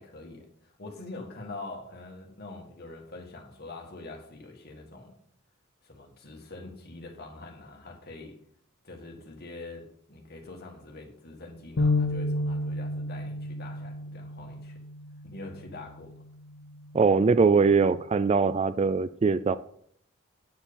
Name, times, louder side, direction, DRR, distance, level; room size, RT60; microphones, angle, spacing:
voice 1, 0.0-5.2 5.8-8.4 8.8-14.8 15.2-16.2, left 2 dB, 50° left, 2 dB, 1.9 m, -44 dB
sound 1, 11.8-18.0, left 2 dB, 65° left, 0.7 m, -32 dB
voice 2, 16.9-19.6, right 4 dB, 30° right, 15 dB, 0.3 m, -22 dB
9.4 x 4.7 x 6.9 m, 0.64 s
head